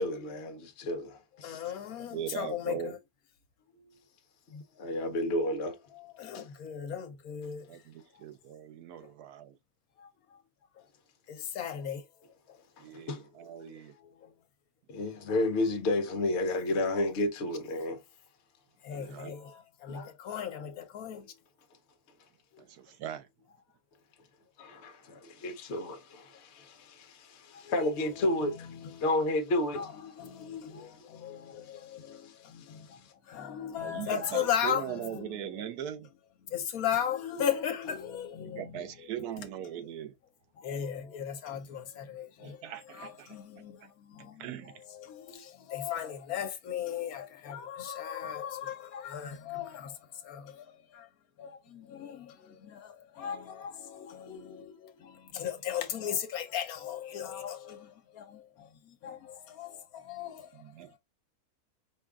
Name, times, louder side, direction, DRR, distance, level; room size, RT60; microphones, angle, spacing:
voice 1, 0.0-1.6 4.5-5.8 6.3-6.4 12.8-13.2 14.9-18.0 19.9-20.1 24.6-28.7 29.0-29.8 32.1-32.2, left 1 dB, 55° left, 1.0 m, -31 dB
voice 2, 1.4-3.0 3.7-4.0 5.9-7.8 8.1-8.2 9.0-9.1 10.0-10.4 10.7-10.9 11.3-12.1 12.5-12.6 13.4-14.3 18.8-21.4 22.5-22.7 27.5-29.0 29.7-35.7 36.4-39.3 40.6-51.1 51.4-61.0, left 9 dB, 70° left, 1.2 m, -38 dB
voice 3, 2.1-2.9 7.7-9.6 12.8-13.9 18.9-19.3 22.6-23.3 33.8-36.1 38.4-40.1 42.4-43.4 43.8-43.9 44.2-44.8 60.5-61.0, right 10 dB, 85° right, 1.2 m, -40 dB
5.0 x 2.3 x 3.4 m
omnidirectional pair, 1.6 m